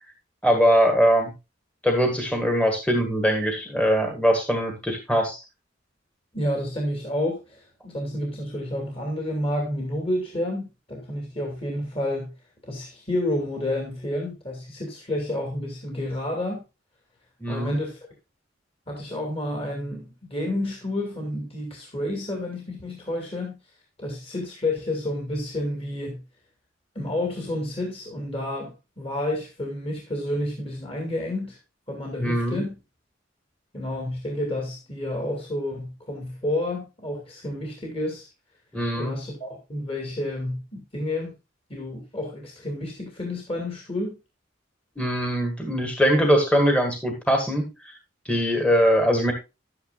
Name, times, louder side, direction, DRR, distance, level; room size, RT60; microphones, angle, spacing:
voice 1, 0.4-1.3 1.8-5.4 17.4-17.8 32.2-32.6 38.7-39.1 45.0-47.7 48.2-49.3, equal, 5° left, 1.7 m, -22 dB
voice 2, 6.3-12.3 12.6-16.6 17.5-18.0 18.9-23.5 24.0-26.2 26.9-31.6 31.9-32.8 33.7-38.3 38.9-41.3 41.7-44.2, left 1 dB, 30° left, 2.6 m, -30 dB
11.5 x 9.6 x 2.4 m
head